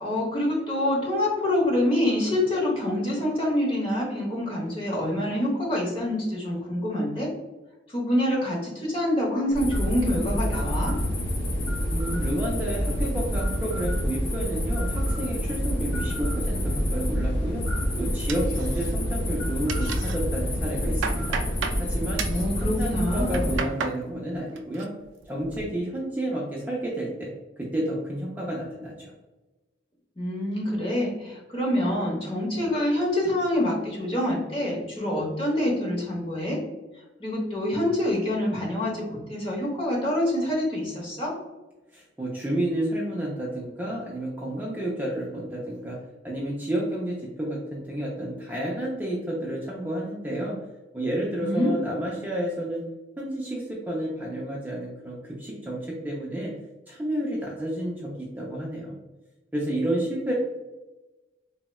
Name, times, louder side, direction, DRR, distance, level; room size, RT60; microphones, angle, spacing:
voice 1, 0.0-7.3 7.9-10.9 22.2-23.6 30.2-36.6 37.2-41.3 51.4-51.7, left 1 dB, 30° left, -3 dB, 0.9 m, -26 dB
sound 1, 9.5-23.6, equal, 85° left, 0.7 m, -27 dB
voice 2, 11.9-17.6 18.0-21.4 21.8-22.2 22.6-24.9 25.3-27.3 27.6-29.1 41.9-46.0 46.2-50.6 50.9-52.8 53.2-56.5 56.9-59.0 59.5-60.3, right 1 dB, 10° right, -4 dB, 0.4 m, -30 dB
sound 2, 18.3-19.1 19.4-20.2 20.6-21.8 22.2-22.5 23.1-24.0 24.3-24.9 25.2-25.7, right 5 dB, 80° right, 0.3 m, -33 dB
3.8 x 2.1 x 2.2 m, 1.1 s
head